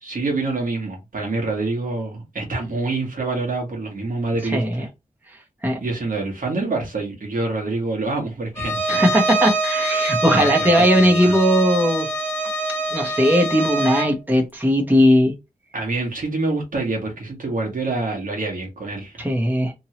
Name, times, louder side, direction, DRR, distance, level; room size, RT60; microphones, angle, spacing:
voice 1, 0.0-4.9 5.8-8.9 10.2-11.3 15.7-19.2, right 3 dB, 70° right, 1.3 m, -26 dB
voice 2, 4.5-4.9 5.6-5.8 8.9-12.1 12.9-15.3 19.2-19.7, equal, 10° right, 0.9 m, -18 dB
Bowed string instrument, 8.6-14.2, right 2 dB, 15° left, 0.9 m, -24 dB
3.0 x 2.7 x 2.9 m
wide cardioid pair, 95°, 15 cm